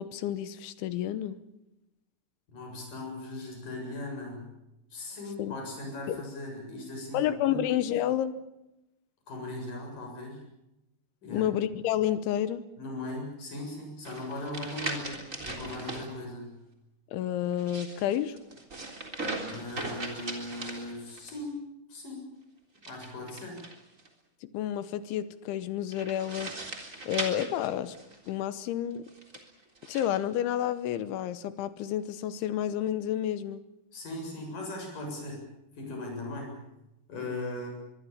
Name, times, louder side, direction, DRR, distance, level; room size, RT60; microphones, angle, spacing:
voice 1, 0.0-1.4 5.4-5.6 6.1-6.2 7.1-8.4 11.3-12.6 17.1-18.4 24.4-26.5 27.1-28.0 28.3-29.1 29.9-33.6, left 11 dB, 75° left, 14 dB, 3.2 m, -30 dB
voice 2, 2.5-4.5 4.9-7.6 9.3-10.4 11.2-11.5 12.8-16.6 19.5-21.6 21.9-22.3 22.9-23.6 33.9-35.4 35.8-36.6 37.1-37.7, left 2 dB, 40° left, 2 dB, 8.8 m, -38 dB
sound 1, 14.0-16.1 17.5-21.4 22.8-24.1 25.9-28.3 29.1-30.1, right 2 dB, 20° right, 3.0 m, -39 dB
23.5 x 23.5 x 7.3 m, 0.91 s
omnidirectional pair, 5.9 m